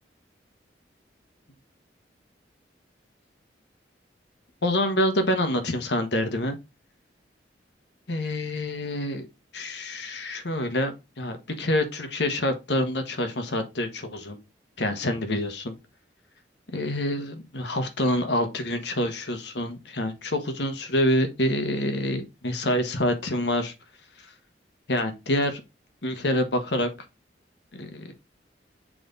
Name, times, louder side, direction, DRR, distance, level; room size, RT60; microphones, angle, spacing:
voice 1, 4.6-6.6 8.1-9.3 9.5-14.4 14.8-15.7 16.7-23.7 24.9-25.6 26.0-26.9 27.7-28.1, left 1 dB, 70° left, 1.2 m, -27 dB
7.6 x 4.0 x 3.8 m
head